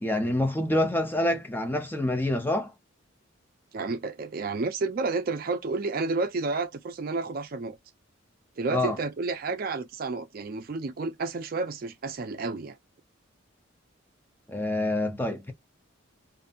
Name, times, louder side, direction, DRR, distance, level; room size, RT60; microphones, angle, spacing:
voice 1, 0.0-2.7 8.7-9.0 14.5-15.5, left 1 dB, 10° left, 0.5 m, -27 dB
voice 2, 3.7-7.8 8.6-12.8, right 3 dB, 45° right, 0.4 m, -31 dB
2.7 x 2.5 x 2.3 m
head